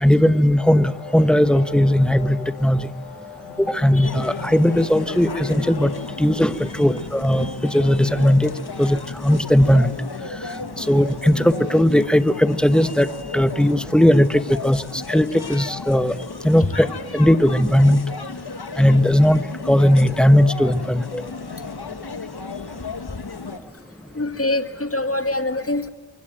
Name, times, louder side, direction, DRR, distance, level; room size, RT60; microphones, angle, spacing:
voice 1, 0.0-2.9 3.6-5.9 6.2-8.5 8.8-9.9 10.8-13.1 13.3-14.8 15.1-16.1 16.4-16.9 17.1-18.0 18.8-21.2, equal, ahead, 12 dB, 1.1 m, -17 dB
sound 1, 0.6-9.0, left 5 dB, 85° left, 5.0 m, -40 dB
sound 2, 4.0-23.6, left 4 dB, 50° left, 1.6 m, -34 dB
voice 2, 24.1-25.9, left 2 dB, 30° left, 9 dB, 2.0 m, -24 dB
24.5 x 24.0 x 9.0 m, 1.3 s
wide cardioid pair, 90°, 48 cm